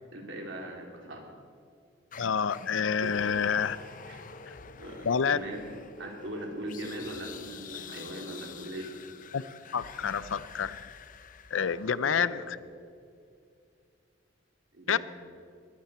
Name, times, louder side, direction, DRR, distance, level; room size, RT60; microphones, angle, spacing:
voice 1, 0.1-1.3 3.0-3.1 4.1-4.2 4.6-5.6 6.0-8.9 12.1-12.4 14.7-15.0, right 1 dB, 70° right, 1 dB, 3.2 m, -40 dB
sound 1, 2.1-12.3, left 6 dB, 45° left, 0.7 m, -47 dB
voice 2, 2.2-3.8 4.5-4.6 5.0-5.4 9.3-9.4 9.7-10.8 11.5-12.6 14.9-15.0, left 6 dB, 80° left, 17 dB, 0.5 m, -28 dB
21.5 x 15.0 x 4.3 m, 2.4 s
head